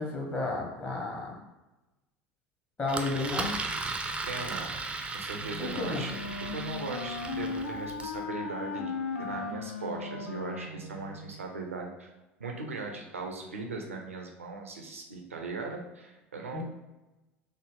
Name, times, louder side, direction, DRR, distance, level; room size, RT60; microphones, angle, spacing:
voice 1, 0.0-1.4 2.8-3.6 5.6-6.1 16.5-16.6, left 2 dB, 30° left, -2 dB, 1.0 m, -32 dB
Engine, 2.9-8.2, right 3 dB, 15° right, 0.4 m, -36 dB
voice 2, 4.2-4.8 5.1-8.9 9.2-12.1 12.4-16.6, right 3 dB, 90° right, 1 dB, 0.5 m, -39 dB
Wind instrument woodwind instrument, 5.3-11.5, left 4 dB, 85° left, 0.4 m, -37 dB
3.8 x 2.1 x 3.5 m, 1.0 s
hypercardioid pair, 70°, 7 cm